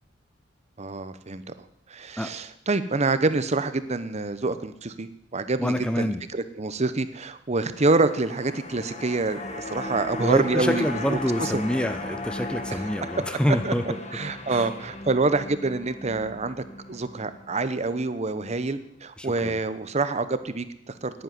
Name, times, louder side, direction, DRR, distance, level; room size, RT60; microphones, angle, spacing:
voice 1, 0.8-1.4 1.9-11.6 13.6-13.7 14.1-16.6 16.9-21.2, right 3 dB, 35° right, 12 dB, 0.8 m, -27 dB
voice 2, 5.6-6.2 10.2-14.0 14.5-14.7 19.2-19.6, equal, 5° left, 9 dB, 0.6 m, -26 dB
sound 1, 7.7-18.1 18.4-18.5, left 2 dB, 35° left, 1.5 m, -37 dB
10.5 x 10.0 x 9.6 m, 0.78 s
head